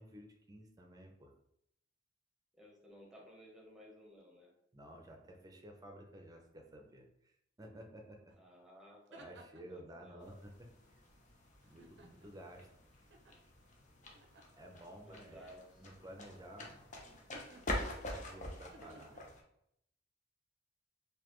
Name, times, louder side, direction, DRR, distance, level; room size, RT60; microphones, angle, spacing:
voice 1, 0.0-1.3 4.7-8.3 9.2-11.0 11.6-12.7 13.0-13.1 14.5-15.4 15.8-16.8 18.1-19.2, right 1 dB, 20° right, 2 dB, 0.6 m, -53 dB
voice 2, 2.6-4.5 8.4-9.3 9.7-10.2 15.0-15.8 18.8-19.0, equal, 5° right, -1 dB, 1.0 m, -57 dB
sound 1, 8.3-8.4 8.8-9.8 11.6-12.5 13.1-13.4 14.1-14.6 15.3-15.6 17.1-18.1 18.7-19.2, right 2 dB, 65° right, 0.5 m, -60 dB
sound 2, 10.2-19.4, left 1 dB, 40° left, 0.7 m, -46 dB
4.0 x 2.8 x 3.0 m, 0.76 s
head